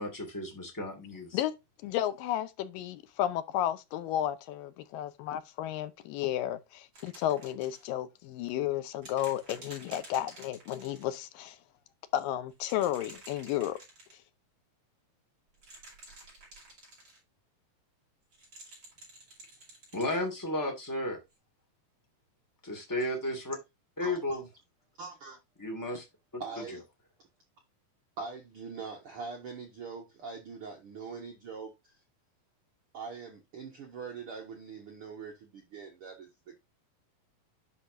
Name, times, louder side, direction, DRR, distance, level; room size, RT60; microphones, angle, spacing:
voice 1, 0.0-1.4 19.9-21.2 22.6-23.6 24.0-24.4 25.6-26.0, left 1 dB, 10° left, 1.1 m, -33 dB
voice 2, 1.8-11.6 12.1-13.8, left 12 dB, 80° left, 2.3 m, -32 dB
sound 1, 6.9-7.9 9.0-11.1 12.5-14.2 15.5-17.2 18.3-20.2 21.3-21.4, right 2 dB, 30° right, 5.3 m, -51 dB
voice 3, 24.0-24.4 25.0-25.4 26.4-26.8 28.2-31.9 32.9-36.6, right 5 dB, 65° right, 1.3 m, -43 dB
10.0 x 5.8 x 2.6 m
omnidirectional pair, 4.1 m